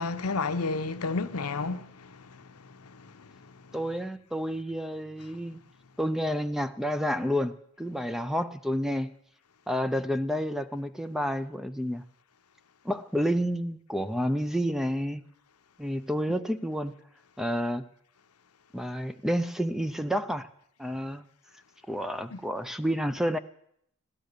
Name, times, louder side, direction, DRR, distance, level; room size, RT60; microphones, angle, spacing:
voice 1, 0.0-2.4 2.8-3.3 22.3-22.4, left 3 dB, 85° left, 0.8 m, -32 dB
voice 2, 3.7-5.6 6.0-9.1 9.7-12.0 12.8-15.2 15.8-16.9 17.4-17.8 18.7-20.5 20.8-21.2 21.9-23.4, equal, ahead, 0.5 m, -30 dB
16.5 x 12.0 x 6.7 m
head